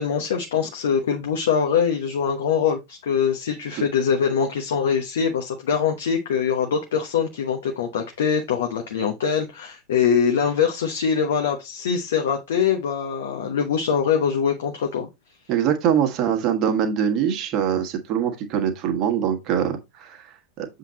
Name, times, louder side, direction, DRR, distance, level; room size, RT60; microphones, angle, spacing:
voice 1, 0.0-15.1, left 7 dB, 60° left, 1.0 m, -23 dB
voice 2, 15.5-20.7, right 8 dB, 35° right, 1.5 m, -23 dB
7.4 x 3.9 x 4.0 m
figure-of-eight pair, 90°, 0 cm